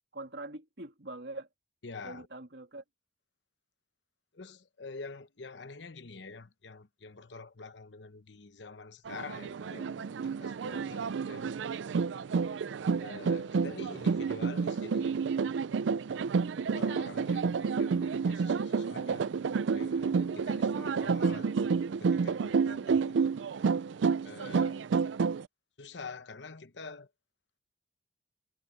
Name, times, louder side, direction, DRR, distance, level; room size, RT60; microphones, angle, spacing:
voice 1, 0.0-1.5 2.0-2.8, right 2 dB, 70° right, 2.7 m, -43 dB
voice 2, 1.8-2.3 4.3-11.5 13.0-15.3 16.7-19.3 19.7-23.4 24.2-24.8 25.8-27.1, left 4 dB, 80° left, 1.0 m, -47 dB
sound 1, 9.1-25.4, right 5 dB, 90° right, 0.4 m, -30 dB
head